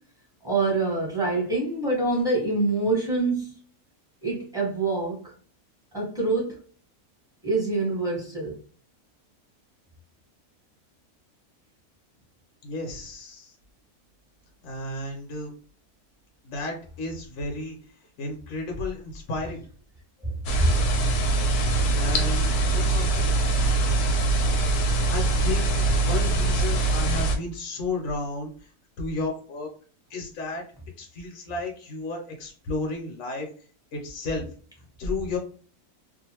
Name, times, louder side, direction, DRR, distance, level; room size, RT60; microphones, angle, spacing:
voice 1, 0.4-3.6 4.2-5.3 5.9-6.6 7.4-8.6 20.2-20.3, right 3 dB, 5° right, 1.1 m, -26 dB
voice 2, 12.6-13.5 14.6-15.5 16.4-17.8 18.2-19.6 21.9-23.3 25.1-28.7 29.0-29.7 30.1-30.6 31.0-33.5 33.9-34.5 35.0-35.4, left 2 dB, 65° left, 1.1 m, -33 dB
sound 1, 20.5-27.4, right 2 dB, 85° left, 1.1 m, -23 dB
2.5 x 2.5 x 2.9 m
omnidirectional pair, 1.6 m